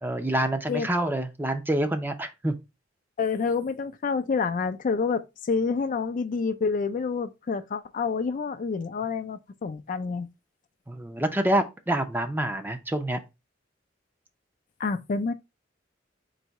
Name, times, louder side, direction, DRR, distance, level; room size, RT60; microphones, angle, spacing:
voice 1, 0.0-2.6 10.9-13.2, right 1 dB, 10° right, 0.5 m, -27 dB
voice 2, 3.2-10.3 14.8-15.3, left 5 dB, 45° left, 0.4 m, -28 dB
4.0 x 2.8 x 4.4 m
head